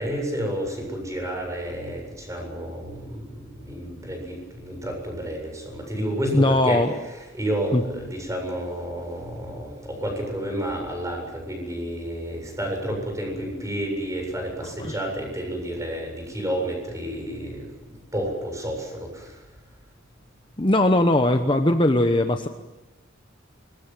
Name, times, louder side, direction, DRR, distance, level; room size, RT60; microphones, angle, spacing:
voice 1, 0.0-6.8 7.3-19.4, right 1 dB, 15° right, 2 dB, 7.7 m, -30 dB
voice 2, 6.3-6.9 7.7-7.8 14.8-15.0 20.6-22.5, left 1 dB, 25° left, 6 dB, 1.0 m, -20 dB
25.0 x 21.5 x 7.6 m, 1.1 s
head